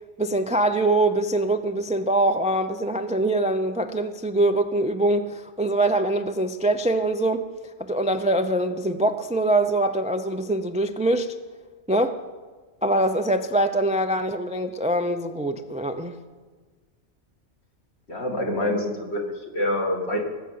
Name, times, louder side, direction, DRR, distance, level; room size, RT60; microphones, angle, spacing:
voice 1, 0.2-7.5 7.8-11.4 11.9-12.2 12.8-16.2, right 1 dB, 10° right, 8 dB, 0.4 m, -23 dB
voice 2, 18.1-20.2, left 1 dB, 60° left, 0 dB, 2.5 m, -26 dB
18.0 x 8.1 x 7.5 m, 1.4 s
omnidirectional pair, 1.2 m